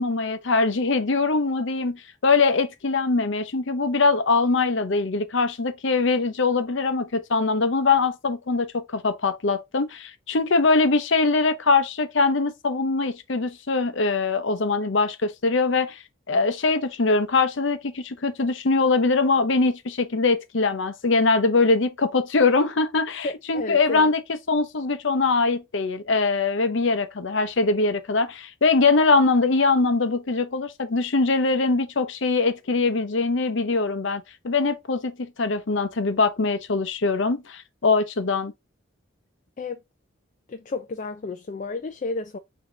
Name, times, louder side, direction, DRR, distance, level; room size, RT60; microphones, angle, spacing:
voice 1, 0.0-16.0 16.3-24.2 24.5-38.5, left 3 dB, 65° left, 0.7 m, -22 dB
voice 2, 23.2-24.1 39.6-39.8 40.5-42.4, left 3 dB, 35° left, 0.4 m, -32 dB
5.1 x 2.8 x 3.6 m
head